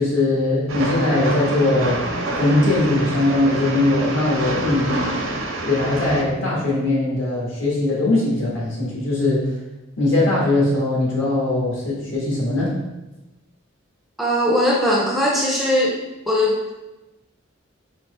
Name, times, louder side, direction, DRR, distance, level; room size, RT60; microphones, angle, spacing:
voice 1, 0.0-2.0 2.4-5.2 5.6-9.5 10.0-12.7, left 2 dB, 70° left, -5 dB, 1.4 m, -20 dB
Train, 0.7-6.2, right 2 dB, 85° right, 0.7 m, -27 dB
voice 2, 14.2-15.9 16.3-16.7, equal, ahead, -4 dB, 0.5 m, -19 dB
4.2 x 2.8 x 3.2 m, 1.0 s
head